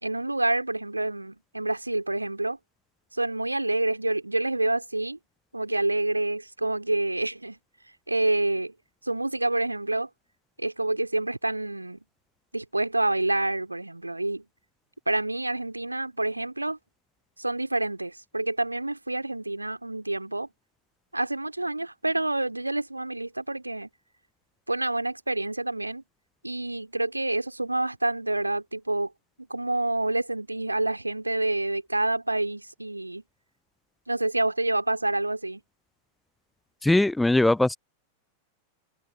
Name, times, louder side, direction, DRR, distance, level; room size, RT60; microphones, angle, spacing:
voice 1, 0.0-2.6 3.1-5.2 5.5-7.6 8.1-8.7 9.0-10.1 10.6-12.0 12.5-14.4 15.1-16.8 17.4-20.5 21.1-23.9 24.7-26.0 26.4-29.1 29.5-33.2 34.1-35.6, right 2 dB, 85° right, 2.5 m, -28 dB
voice 2, 36.8-37.8, left 2 dB, 5° left, 0.5 m, -20 dB
figure-of-eight pair, 90°, 0 cm